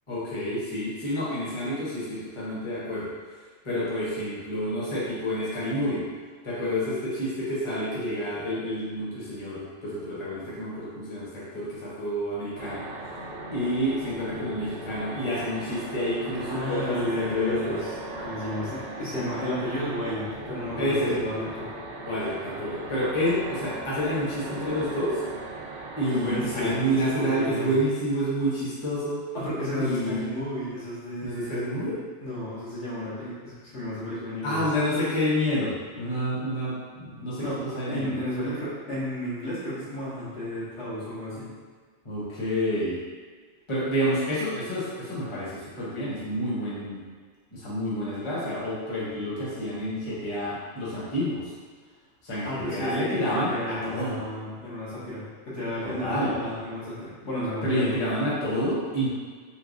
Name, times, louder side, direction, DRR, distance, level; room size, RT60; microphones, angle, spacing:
voice 1, 0.1-3.1 3.6-6.0 6.4-12.8 13.5-17.8 20.8-21.2 22.0-25.2 26.0-29.2 29.8-30.2 31.2-32.0 34.4-37.4 37.7-38.1 42.0-43.0 43.7-47.0 47.5-51.5 52.2-54.2 55.8-56.4 57.6-59.1, equal, 30° left, -8 dB, 0.8 m, -29 dB
sound 1, 12.6-27.1, right 2 dB, 80° right, 1.0 m, -38 dB
voice 2, 16.5-17.9 18.2-21.7 26.1-27.8 29.3-34.7 37.4-37.6 37.9-41.5 52.4-58.0, equal, 80° left, -10 dB, 1.5 m, -33 dB
3.2 x 3.2 x 2.5 m, 1.6 s
omnidirectional pair, 1.2 m